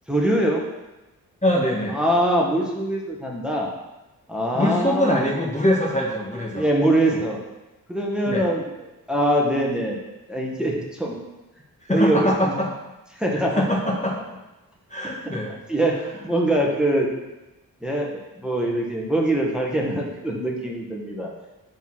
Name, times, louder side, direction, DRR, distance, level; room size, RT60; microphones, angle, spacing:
voice 1, 0.1-0.6 1.9-3.7 4.3-5.3 6.5-7.4 7.9-8.7 9.1-10.0 10.3-11.1 11.9-12.6 13.1-13.6 15.7-16.0 16.2-17.1 17.8-21.3, right 1 dB, ahead, -2 dB, 1.4 m, -23 dB
voice 2, 1.4-1.9 4.5-6.6 8.3-8.5 11.9-12.7 13.6-14.2 14.9-15.5, left 1 dB, 20° left, -2 dB, 1.3 m, -23 dB
7.1 x 3.9 x 6.1 m, 1.0 s
cardioid pair, 65°, 37 cm